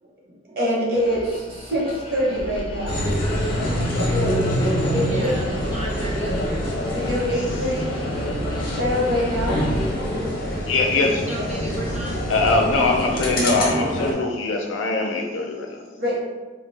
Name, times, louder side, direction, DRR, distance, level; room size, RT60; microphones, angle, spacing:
voice 1, 0.0-0.6 5.1-6.9 11.2-12.7, right 2 dB, 35° right, -3 dB, 0.6 m, -36 dB
voice 2, 0.6-3.0 4.1-4.5 4.9-5.4 6.9-7.9 8.8-9.6 16.0-16.2, equal, 50° right, -5 dB, 1.0 m, -24 dB
sound 1, 0.9-9.9, left 2 dB, 25° left, 0.3 m, -40 dB
sound 2, 2.4-14.1, right 1 dB, 80° right, 0.3 m, -33 dB
sound 3, 2.9-14.1, equal, 50° left, 0.7 m, -26 dB
voice 3, 10.7-11.2 12.3-15.8, left 3 dB, 85° left, 2 dB, 0.5 m, -22 dB
2.5 x 2.2 x 4.0 m, 1.2 s
head